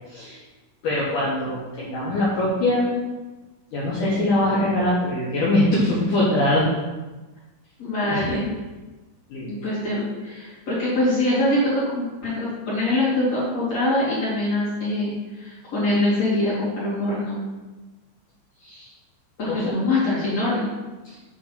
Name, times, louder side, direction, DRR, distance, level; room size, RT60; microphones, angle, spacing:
voice 1, 0.1-0.4 0.8-3.0 3.7-6.7 8.1-8.3 9.3-9.5 19.5-19.6 21.0-21.2, left 1 dB, 80° left, -8 dB, 1.8 m, -22 dB
voice 2, 7.8-8.5 9.4-17.4 18.6-18.9 19.4-20.7, left 1 dB, 45° left, -10 dB, 2.6 m, -24 dB
8.4 x 3.7 x 5.7 m, 1.2 s
omnidirectional pair, 5.7 m